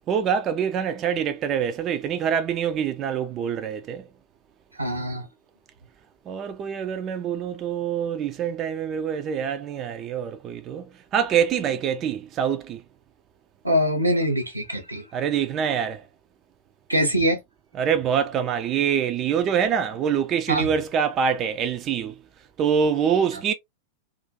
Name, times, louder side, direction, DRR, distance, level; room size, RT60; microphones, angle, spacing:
voice 1, 0.1-4.0 6.3-10.8 11.1-12.8 15.1-16.0 17.8-22.1 22.6-23.5, right 7 dB, 30° right, 0.3 m, -25 dB
voice 2, 4.8-5.3 13.6-15.0 16.9-17.4 20.5-20.7, equal, 85° right, 0.7 m, -23 dB
2.4 x 2.4 x 2.5 m
figure-of-eight pair, 90°, 0 cm